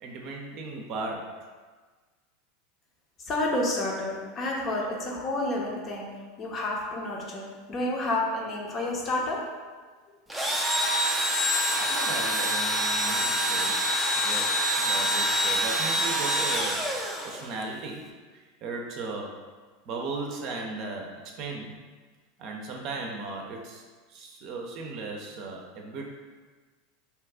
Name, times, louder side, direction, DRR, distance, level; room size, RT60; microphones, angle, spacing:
voice 1, 0.0-1.3 11.8-13.8 14.1-17.0 17.2-19.4 19.9-21.8 22.4-23.8 24.1-26.0, right 3 dB, 50° right, 0 dB, 0.5 m, -37 dB
voice 2, 3.3-6.1 6.4-9.4, left 2 dB, 35° left, -2 dB, 0.7 m, -30 dB
Engine / Drill, 10.3-17.6, equal, 5° right, 0.5 m, -26 dB
2.8 x 2.3 x 3.6 m, 1.4 s
hypercardioid pair, 95°, 0 cm